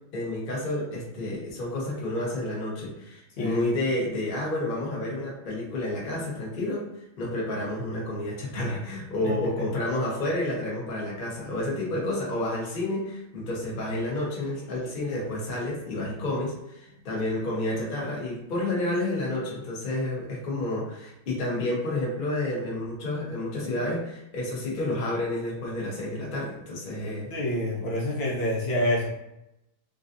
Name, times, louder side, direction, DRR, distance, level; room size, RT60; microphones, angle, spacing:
voice 1, 0.1-6.9 7.2-27.3, left 1 dB, 85° left, -4 dB, 0.4 m, -30 dB
voice 2, 27.3-29.1, left 1 dB, 65° left, -4 dB, 1.5 m, -27 dB
3.8 x 2.5 x 2.6 m, 0.86 s
omnidirectional pair, 2.4 m